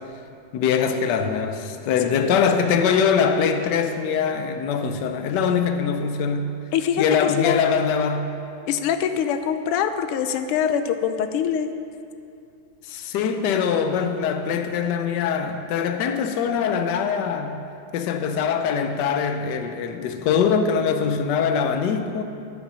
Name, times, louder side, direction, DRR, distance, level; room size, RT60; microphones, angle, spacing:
voice 1, 0.5-6.5 7.0-8.3 12.8-17.6 17.9-22.2, left 6 dB, 65° left, 7 dB, 1.1 m, -23 dB
voice 2, 2.1-2.4 6.7-7.6 8.7-11.7, left 8 dB, 90° left, 9 dB, 1.6 m, -24 dB
9.1 x 8.7 x 6.1 m, 2.5 s
omnidirectional pair, 2.4 m